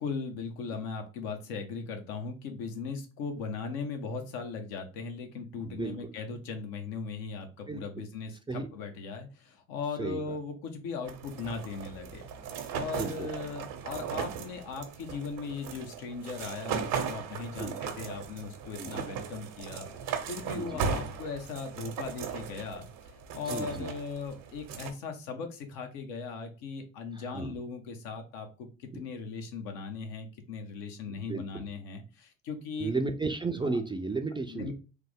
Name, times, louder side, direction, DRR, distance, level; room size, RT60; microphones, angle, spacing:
voice 1, 0.0-19.9 20.3-22.9 23.3-32.9 33.6-33.8 34.5-34.7, left 5 dB, 75° left, 5 dB, 0.9 m, -38 dB
voice 2, 5.7-6.1 7.7-8.0 8.5-8.7 10.0-10.2 12.9-13.3 17.6-17.7 18.8-19.0 20.5-20.8 23.5-23.9 27.1-27.5 28.9-29.0 31.2-31.6 32.8-34.7, right 3 dB, 15° right, 6 dB, 0.3 m, -34 dB
sound 1, 11.0-24.9, right 6 dB, 70° right, 0.8 m, -37 dB
3.3 x 2.0 x 3.4 m, 0.33 s
supercardioid pair, 70°, 35 cm